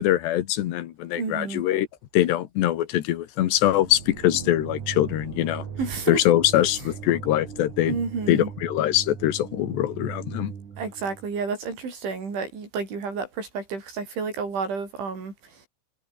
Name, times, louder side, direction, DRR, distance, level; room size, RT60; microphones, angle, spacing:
voice 1, 0.0-1.9 2.1-5.6 6.1-7.9 8.3-10.5, left 13 dB, 75° left, 3.4 m, -23 dB
voice 2, 1.2-1.6 5.8-6.2 7.8-8.5 10.8-15.6, right 5 dB, 90° right, 10.0 m, -30 dB
sound 1, 3.6-11.4, right 7 dB, 45° right, 4.0 m, -39 dB
omnidirectional pair, 5.3 m